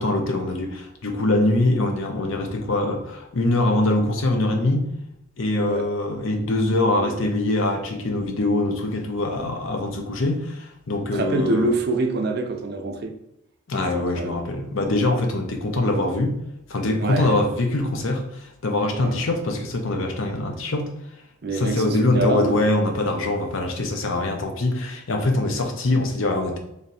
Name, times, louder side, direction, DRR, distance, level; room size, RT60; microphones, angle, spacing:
voice 1, 0.0-4.9 5.4-11.7 13.7-16.4 16.7-20.9 21.5-26.6, left 2 dB, 65° left, 0.6 m, -23 dB
voice 2, 6.9-7.3 11.1-13.1 13.9-14.4 17.0-17.4 18.9-19.3 21.4-22.6, right 2 dB, 45° right, 0.5 m, -26 dB
3.3 x 2.6 x 4.1 m
head